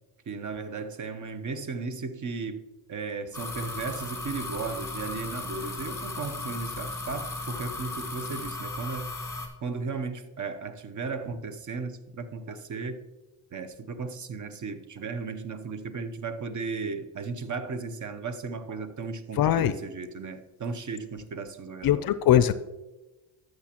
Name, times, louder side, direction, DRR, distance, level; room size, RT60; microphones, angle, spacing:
voice 1, 0.3-2.6 2.9-9.1 9.6-13.1 13.5-22.1, right 4 dB, 40° right, 0.8 m, -35 dB
sound 1, 3.3-9.5, left 3 dB, 5° left, 2.1 m, -36 dB
voice 2, 19.4-19.7 21.8-22.6, left 11 dB, 50° left, 0.5 m, -21 dB
13.0 x 6.4 x 2.9 m
supercardioid pair, 80°, 49 cm